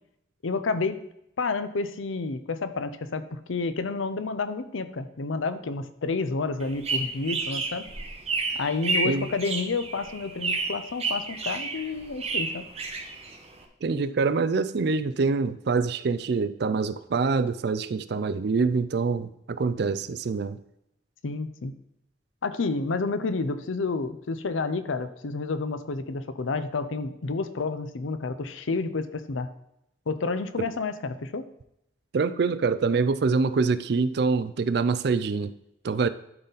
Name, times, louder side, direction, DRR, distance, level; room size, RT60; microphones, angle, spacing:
voice 1, 0.4-1.0 1.4-7.8 8.6-12.7 21.2-21.7 22.4-29.5 30.1-31.5, left 3 dB, 90° left, 0.6 m, -30 dB
sound 1, 6.6-13.6, right 3 dB, 35° right, 1.0 m, -31 dB
voice 2, 13.8-20.6 32.1-35.5 35.8-36.1, right 4 dB, 55° right, 0.4 m, -25 dB
12.0 x 4.1 x 4.0 m
head